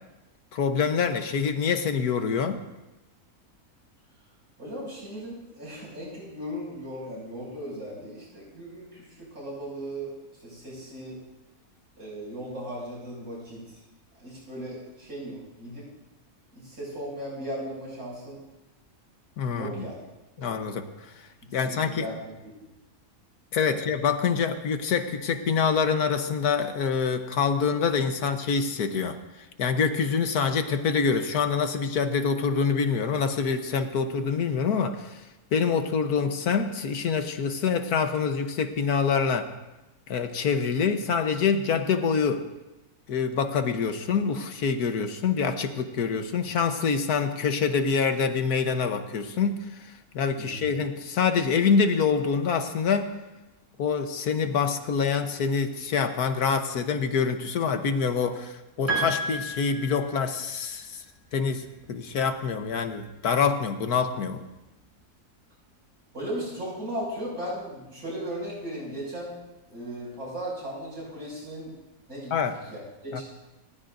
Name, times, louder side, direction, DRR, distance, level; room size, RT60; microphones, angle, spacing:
voice 1, 0.5-2.6 19.4-19.8 20.4-20.8 21.5-22.0 23.5-29.2 29.6-35.2 35.5-39.5 40.1-42.4 43.1-49.8 50.1-53.1 53.8-61.0 61.3-64.5 72.3-72.6 73.1-73.2, left 6 dB, 75° left, 7 dB, 1.6 m, -26 dB
voice 2, 4.6-10.1 10.4-11.2 12.0-13.8 14.2-15.9 16.5-18.4 19.5-20.0 20.4-20.5 21.4-22.7 23.7-23.8 50.4-50.7 66.1-69.3 69.7-71.7 72.1-72.3 72.6-73.2, equal, 70° right, -5 dB, 7.0 m, -37 dB
Piano, 58.9-60.6, right 2 dB, 10° right, 5.6 m, -31 dB
29.0 x 14.5 x 2.6 m, 1.0 s
omnidirectional pair, 1.6 m